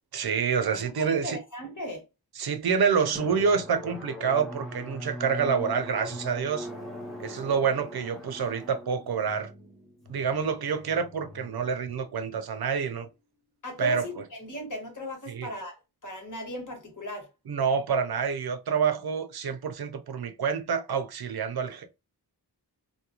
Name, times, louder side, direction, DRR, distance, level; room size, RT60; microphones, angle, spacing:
voice 1, 0.1-1.4 2.4-6.7 7.2-9.5 10.1-13.1 13.8-14.0 15.3-15.5 17.5-21.9, right 6 dB, 65° right, 0.5 m, -27 dB
voice 2, 1.0-2.0 13.6-17.3, left 1 dB, 50° left, 1.2 m, -37 dB
Drum, 3.1-12.4, left 1 dB, ahead, 0.9 m, -42 dB
2.4 x 2.1 x 2.8 m
wide cardioid pair, 65°, 41 cm